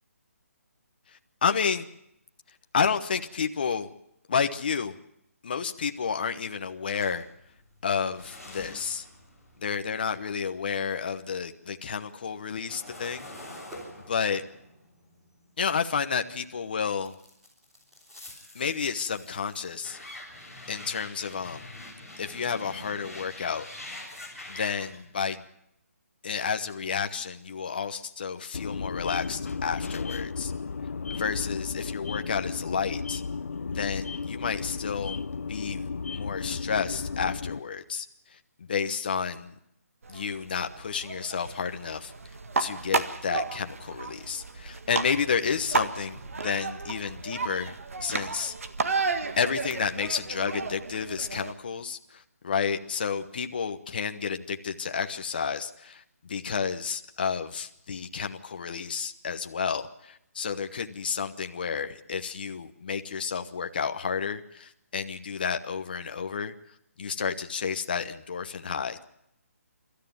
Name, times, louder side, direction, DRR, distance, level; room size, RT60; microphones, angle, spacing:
voice 1, 1.4-1.8 2.7-3.9 4.3-5.0 5.4-7.3 7.8-9.0 9.6-13.3 14.1-14.4 15.6-17.2 18.5-20.0 20.7-21.7 22.2-23.7 24.5-25.4 26.2-30.5 31.1-33.2 33.7-38.1 38.3-39.5 40.1-42.1 42.6-47.7 48.0-48.5 49.4-66.5 67.0-69.0, left 6 dB, 35° left, 8 dB, 1.0 m, -31 dB
sound 1, 6.9-11.1 11.5-16.4 17.0-25.0, left 1 dB, 5° right, 3.6 m, -46 dB
sound 2, 28.5-37.6, left 5 dB, 65° left, 0.8 m, -34 dB
sound 3, 40.0-51.5, right 4 dB, 65° right, 1.7 m, -33 dB
25.5 x 13.5 x 9.2 m, 0.78 s
hypercardioid pair, 175°, 8 cm